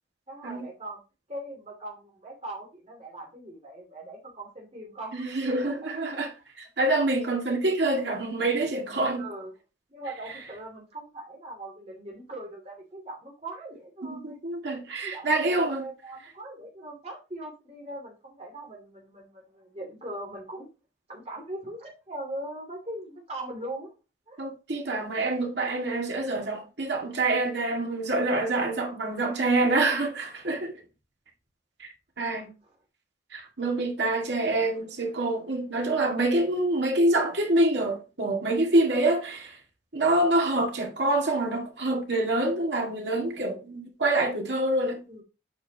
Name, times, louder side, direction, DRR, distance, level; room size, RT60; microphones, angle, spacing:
voice 1, 0.3-1.0 1.3-5.3 5.6-5.9 9.1-9.5 9.9-14.4 15.0-20.7 21.1-23.9 24.3-24.4 32.6-32.8 45.1-45.2, right 1 dB, 35° right, 2.6 m, -40 dB
voice 2, 5.1-9.3 14.1-15.8 24.4-30.7 31.8-31.9 32.2-32.5 33.3-39.6 39.9-45.0, right 2 dB, 70° right, 2.1 m, -26 dB
8.6 x 5.5 x 2.9 m
head